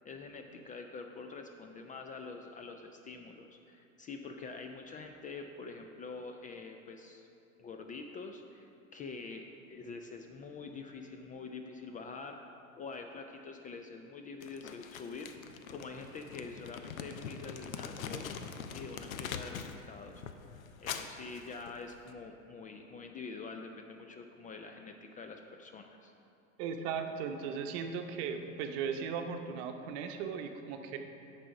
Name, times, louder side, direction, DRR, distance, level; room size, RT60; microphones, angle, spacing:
voice 1, 0.0-7.3 7.6-9.4 9.7-12.4 12.8-15.3 15.7-18.3 18.7-20.2 20.8-26.1, left 4 dB, 20° left, 5 dB, 0.4 m, -46 dB
Crumpling crinkling, 14.4-19.8 20.1-22.1, left 7 dB, 85° left, 0.6 m, -43 dB
voice 2, 26.6-31.0, right 6 dB, 55° right, 6 dB, 0.8 m, -37 dB
9.8 x 4.1 x 5.8 m, 2.7 s
hypercardioid pair, 90°, 40 cm